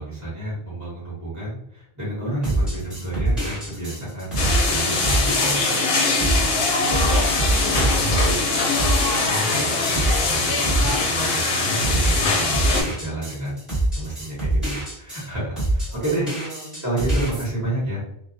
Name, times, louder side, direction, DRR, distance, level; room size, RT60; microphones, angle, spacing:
voice 1, 0.0-5.6 6.2-6.4 7.7-8.5 9.3-16.3 16.8-18.0, right 1 dB, 15° right, -8 dB, 1.1 m, -30 dB
sound 1, 2.4-15.3 15.6-17.4, right 1 dB, ahead, 1.3 m, -25 dB
sound 2, 4.4-12.8, left 3 dB, 75° left, 0.8 m, -22 dB
voice 2, 6.1-8.2 8.5-8.7 15.9-16.8, right 2 dB, 35° right, -9 dB, 0.6 m, -37 dB
2.2 x 2.2 x 2.6 m, 0.71 s
omnidirectional pair, 1.0 m